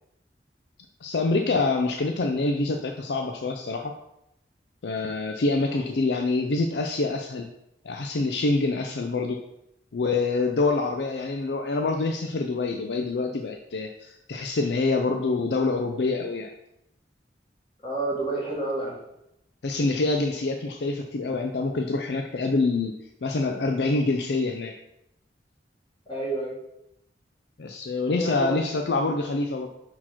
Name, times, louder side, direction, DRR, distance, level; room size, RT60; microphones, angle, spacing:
voice 1, 1.0-3.9 4.8-7.5 7.8-9.4 9.9-16.5 19.6-24.7 27.6-29.7, left 3 dB, 70° left, 4 dB, 0.5 m, -26 dB
voice 2, 17.8-19.0 26.1-26.6 28.2-28.6, right 2 dB, 30° left, -5 dB, 2.2 m, -29 dB
5.9 x 4.4 x 4.4 m, 0.81 s
head